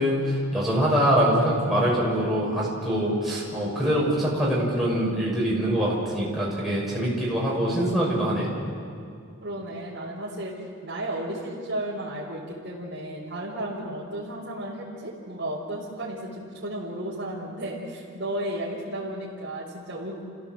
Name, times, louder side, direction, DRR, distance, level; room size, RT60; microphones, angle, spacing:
voice 1, 0.0-8.5, equal, ahead, -6 dB, 6.1 m, -24 dB
voice 2, 9.4-20.2, right 1 dB, 50° right, -9 dB, 4.2 m, -33 dB
28.5 x 16.0 x 7.8 m, 2.4 s
head